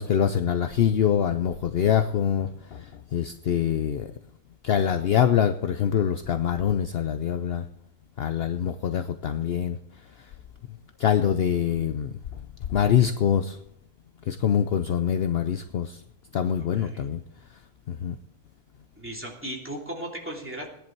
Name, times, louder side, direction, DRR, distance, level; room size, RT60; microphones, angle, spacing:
voice 1, 0.0-4.1 4.6-7.7 8.2-9.8 11.0-12.1 12.7-13.6 14.3-16.0 16.3-17.2 17.9-18.1, left 8 dB, 60° left, 9 dB, 0.8 m, -24 dB
voice 2, 16.5-17.1 19.0-20.7, right 1 dB, 10° right, -2 dB, 2.9 m, -37 dB
17.0 x 10.5 x 4.6 m, 0.76 s
omnidirectional pair, 1.3 m